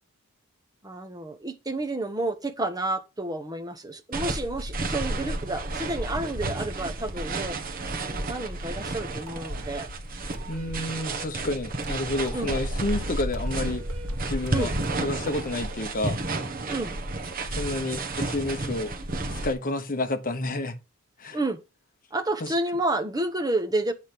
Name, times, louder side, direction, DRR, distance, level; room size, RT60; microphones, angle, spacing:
voice 1, 0.8-7.6 8.3-9.9 12.3-12.5 14.5-14.7 16.7-17.0 21.3-21.6 22.1-23.9, right 2 dB, 15° right, 1.0 m, -30 dB
sound 1, 4.1-19.5, right 2 dB, 40° right, 1.3 m, -31 dB
sound 2, 9.3-9.9 10.3-11.4 11.8-12.9 13.3-15.9, right 3 dB, 75° right, 1.4 m, -45 dB
voice 2, 10.5-13.9 14.3-16.2 17.5-18.9 19.3-20.8 21.2-21.4 22.4-22.5, left 2 dB, 40° left, 1.0 m, -30 dB
8.7 x 5.1 x 6.0 m
head